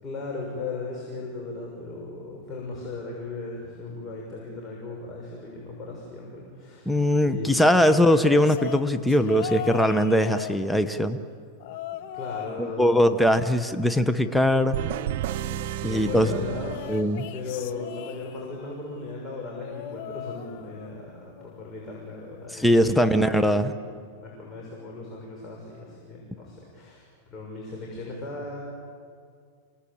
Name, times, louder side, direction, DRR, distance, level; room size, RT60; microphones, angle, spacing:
voice 1, 0.0-7.8 9.3-9.4 11.9-13.4 15.5-16.8 17.3-23.2 23.5-23.8 24.2-28.6, left 3 dB, 25° left, -2 dB, 6.4 m, -37 dB
voice 2, 6.9-11.2 12.6-14.8 15.8-16.3 16.9-17.3 22.5-23.7, equal, 5° left, 9 dB, 0.9 m, -21 dB
sound 1, 7.8-11.1 11.6-12.6 12.9-14.4 16.5-18.7 19.6-21.0 21.4-21.7 22.9-23.0, left 12 dB, 60° left, 1.2 m, -39 dB
sound 2, 14.7-17.5, right 11 dB, 65° right, 0.8 m, -32 dB
28.5 x 18.5 x 8.8 m, 2.2 s
supercardioid pair, 130°, 0 cm